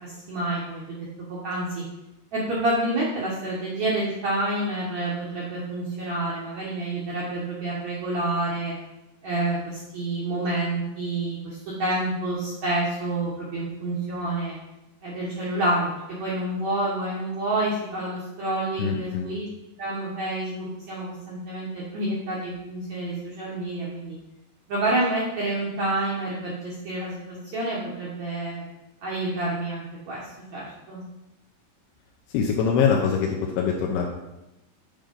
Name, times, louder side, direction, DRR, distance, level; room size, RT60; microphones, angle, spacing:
voice 1, 0.0-1.8 2.3-8.7 9.2-14.6 15.0-19.5 19.8-24.2 24.7-28.6 29.0-31.0, right 2 dB, 85° right, -6 dB, 1.5 m, -28 dB
voice 2, 18.8-19.3 32.3-34.1, left 6 dB, 85° left, -1 dB, 3.1 m, -23 dB
9.1 x 3.9 x 5.2 m, 0.94 s
omnidirectional pair, 5.3 m